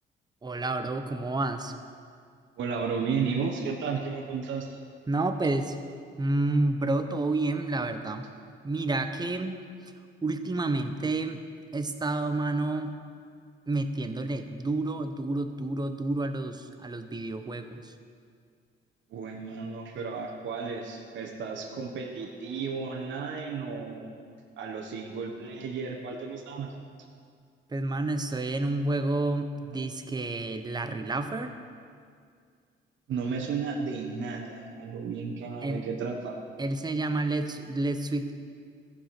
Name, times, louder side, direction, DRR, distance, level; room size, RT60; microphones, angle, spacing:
voice 1, 0.4-1.7 5.1-5.7 6.2-8.3 8.6-9.6 10.2-11.4 11.7-13.0 13.7-17.9 27.7-31.5 35.6-35.8 36.6-38.4, right 2 dB, 20° right, 8 dB, 0.8 m, -29 dB
voice 2, 2.6-4.8 19.1-24.2 24.6-26.7 33.1-36.4, right 5 dB, 70° right, 1 dB, 1.1 m, -33 dB
14.5 x 5.0 x 5.9 m, 2.2 s
cardioid pair, 90°, 20 cm